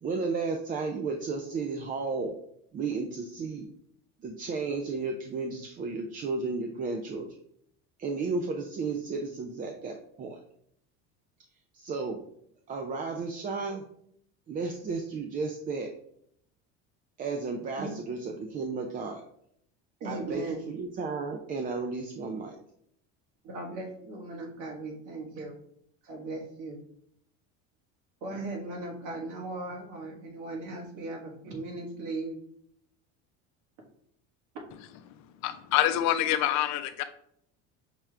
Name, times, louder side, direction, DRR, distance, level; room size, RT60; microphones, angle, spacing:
voice 1, 0.0-2.4 2.7-3.7 4.2-7.3 8.0-10.4 11.7-12.2 12.7-13.8 14.5-15.9 17.2-19.2 20.0-22.6, right 4 dB, 25° right, 3 dB, 0.4 m, -33 dB
voice 2, 20.0-20.6 23.4-25.6 26.0-26.8 28.2-32.4, right 2 dB, 65° right, 0 dB, 1.5 m, -37 dB
voice 3, 35.4-37.0, left 12 dB, 60° left, 10 dB, 0.5 m, -26 dB
5.7 x 2.3 x 3.2 m, 0.69 s
cardioid pair, 125°, 32 cm